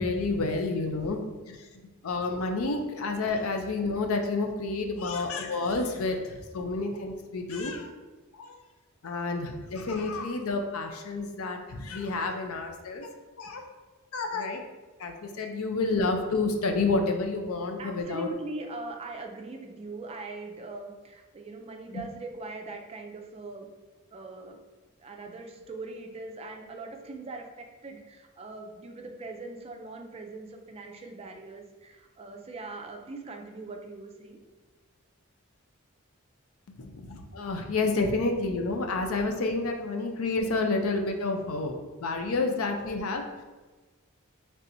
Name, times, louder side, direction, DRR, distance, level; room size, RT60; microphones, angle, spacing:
voice 1, 0.0-1.7 2.0-7.9 8.3-8.6 9.0-13.1 13.4-13.7 14.1-14.6 15.0-18.3 21.9-22.0 36.7-43.5, left 3 dB, 85° left, 4 dB, 0.5 m, -29 dB
voice 2, 17.8-23.7 24.1-24.6 25.0-34.4, right 3 dB, 30° right, 3 dB, 0.4 m, -41 dB
4.2 x 3.3 x 2.6 m, 1.3 s
head